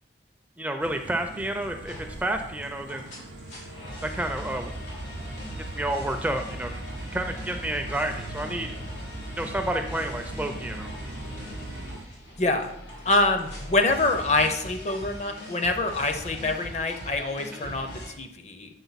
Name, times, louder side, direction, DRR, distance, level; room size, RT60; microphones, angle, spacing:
voice 1, 0.6-3.1 4.1-4.7 5.7-6.7 7.1-8.7 9.3-10.9 17.5-17.7, right 1 dB, 10° right, 5 dB, 0.4 m, -30 dB
sound 1, 0.8-12.1, right 2 dB, 85° right, 0.5 m, -44 dB
sound 2, 1.3-18.1, equal, 90° left, 2.9 m, -39 dB
voice 2, 12.4-12.7 13.1-18.7, left 2 dB, 40° left, 6 dB, 0.6 m, -25 dB
8.0 x 4.7 x 4.0 m, 0.79 s
head